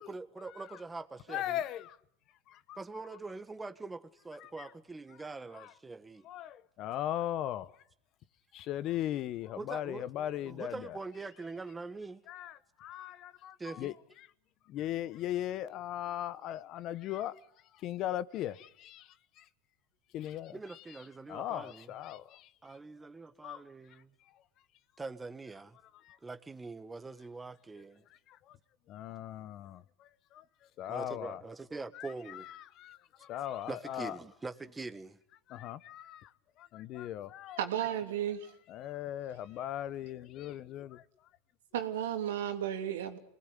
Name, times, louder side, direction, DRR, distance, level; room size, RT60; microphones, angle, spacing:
voice 1, 0.0-1.6 2.8-6.3 9.6-12.2 13.6-13.9 20.5-21.9 22.6-24.1 25.0-25.8 26.2-28.0 30.9-32.5 33.7-35.2, right 3 dB, 15° right, 1.4 m, -43 dB
voice 2, 1.3-2.0 2.5-2.8 4.4-4.7 5.5-5.7 6.2-7.7 8.5-11.0 12.3-14.3 14.7-17.4 17.7-19.5 20.1-21.0 21.3-22.8 23.4-23.6 25.9-26.2 28.1-28.6 28.9-30.4 30.8-31.4 31.9-34.2 35.5-36.3 36.6-37.6 38.7-41.0, left 12 dB, 50° left, 1.0 m, -39 dB
voice 3, 37.6-38.5 41.7-43.2, right 10 dB, 85° right, 2.9 m, -33 dB
26.0 x 19.5 x 10.0 m
supercardioid pair, 110°, 0 cm